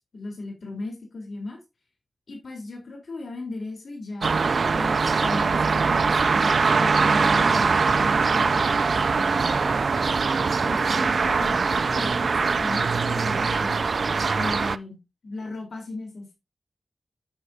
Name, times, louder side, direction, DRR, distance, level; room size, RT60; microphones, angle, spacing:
voice 1, 0.1-1.6 2.3-4.4 4.7-9.8 10.6-13.9 14.3-16.3, left 2 dB, 75° left, 1 dB, 3.8 m, -36 dB
sound 1, 4.2-14.8, right 4 dB, 70° right, 0.4 m, -22 dB
10.0 x 7.9 x 2.7 m, 0.24 s
cardioid pair, 40°, 0 cm